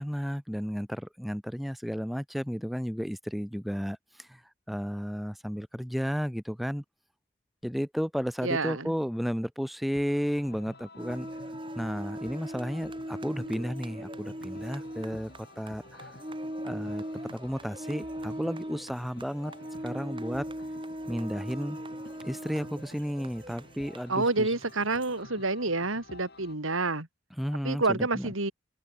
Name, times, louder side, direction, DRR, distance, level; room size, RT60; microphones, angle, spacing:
voice 1, 0.0-4.4 4.7-6.8 7.6-11.3 11.7-15.3 15.6-16.1 16.6-17.0 17.3-19.5 19.8-20.5 21.1-21.8 22.2-24.5 27.4-28.3, equal, ahead, 1.1 m, -33 dB
voice 2, 8.4-8.9 24.1-27.1 27.6-28.5, right 3 dB, 80° right, 3.4 m, -28 dB
sound 1, 9.9-26.5, left 2 dB, 50° left, 3.6 m, -51 dB
sound 2, 11.0-25.1, right 1 dB, 25° right, 3.3 m, -40 dB
head